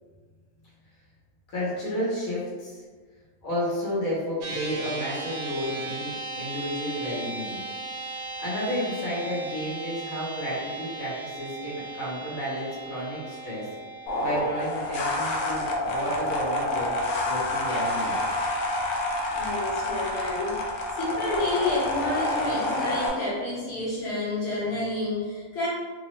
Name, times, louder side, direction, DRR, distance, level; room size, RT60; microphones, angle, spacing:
voice 1, 1.5-2.8 3.4-7.6 8.4-13.7 14.2-17.0 17.2-18.3, equal, 85° left, -7 dB, 1.3 m, -31 dB
sound 1, 4.4-17.9, right 3 dB, 70° right, 0.8 m, -38 dB
sound 2, 14.1-23.1, left 1 dB, 70° left, 0.9 m, -28 dB
voice 2, 19.3-25.7, left 2 dB, 55° left, -8 dB, 1.3 m, -30 dB
3.2 x 2.0 x 3.0 m, 1.5 s
omnidirectional pair, 1.4 m